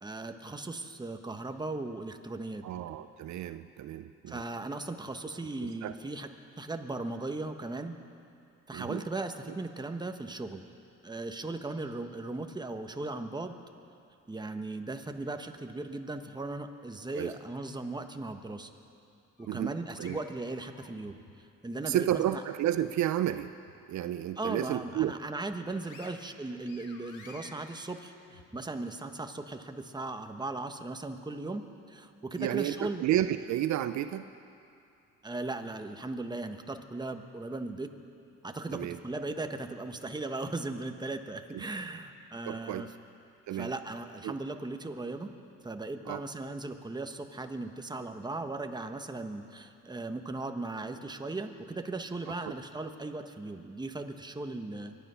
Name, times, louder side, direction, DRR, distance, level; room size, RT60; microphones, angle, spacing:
voice 1, 0.0-2.6 4.3-6.3 6.6-8.0 8.7-10.6 11.0-13.5 14.3-18.7 19.4-22.4 24.4-33.0 35.2-37.9 38.4-42.9 43.5-45.3 45.6-55.0, right 2 dB, 15° right, 6 dB, 1.1 m, -37 dB
voice 2, 2.6-4.4 5.6-5.9 8.7-9.0 17.2-17.3 19.5-19.7 20.0-20.2 21.8-23.5 23.9-25.2 32.4-34.2 38.7-39.0 41.5-41.6 42.5-42.9 43.5-43.7 44.2-44.4 46.1-46.2 52.3-52.4, right 12 dB, 70° right, 11 dB, 0.6 m, -31 dB
sound 1, 19.4-21.4 21.8-23.3 23.7-23.8 24.3-25.1 25.5-28.9, left 4 dB, 85° left, 1.9 m, -55 dB
24.0 x 10.5 x 5.7 m, 2.6 s
cardioid pair, 90°, 30 cm